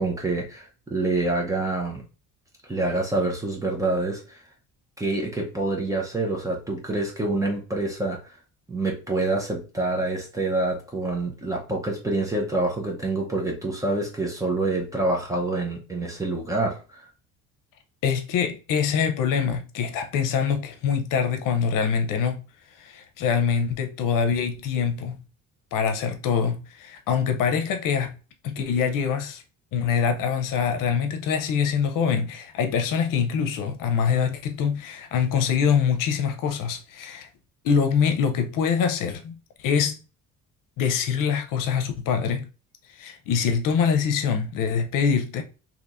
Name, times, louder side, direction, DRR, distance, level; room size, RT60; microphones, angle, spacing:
voice 1, 0.0-2.0 2.7-4.4 5.0-8.2 8.7-17.1, right 2 dB, 10° right, 0.7 m, -26 dB
voice 2, 18.0-22.4 22.8-25.2 25.7-28.1 28.4-29.4 29.7-37.3 37.6-40.0 40.8-42.5 43.0-45.4, left 6 dB, 70° left, 0.7 m, -24 dB
4.4 x 3.0 x 2.5 m
cardioid pair, 155°, 33 cm